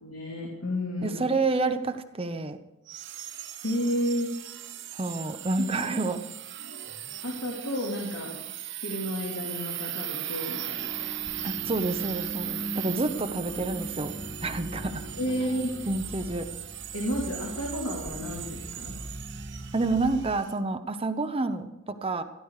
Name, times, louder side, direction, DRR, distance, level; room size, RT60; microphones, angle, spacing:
voice 1, 0.0-1.2 3.6-4.3 7.2-8.3 8.8-10.9 15.2-15.7 16.9-19.0, equal, 70° left, -2 dB, 3.0 m, -31 dB
voice 2, 1.0-2.6 4.9-6.2 11.4-14.1 14.4-15.1 15.9-16.5 19.7-22.2, right 3 dB, 25° right, 9 dB, 0.8 m, -29 dB
sound 1, 2.9-20.5, right 13 dB, 55° right, 1.1 m, -38 dB
sound 2, 10.8-20.4, equal, 10° right, 1.3 m, -40 dB
15.5 x 11.5 x 4.9 m, 0.96 s
head